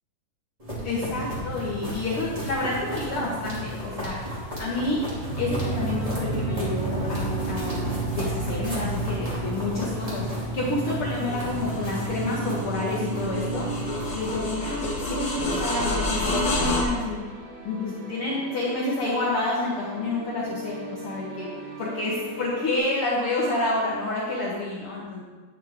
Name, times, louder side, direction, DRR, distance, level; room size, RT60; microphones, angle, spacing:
sound 1, 0.6-14.3, right 1 dB, 15° right, 1.8 m, -32 dB
voice 1, 0.8-4.2 4.6-13.6 14.1-17.2 17.6-21.5 21.8-25.2, left 2 dB, 80° left, -5 dB, 1.2 m, -29 dB
sound 2, 5.2-22.8, right 4 dB, 85° right, 3.6 m, -36 dB
sound 3, 11.2-16.8, left 2 dB, 45° left, 1.5 m, -30 dB
10.0 x 7.2 x 3.6 m, 1.4 s
omnidirectional pair, 4.3 m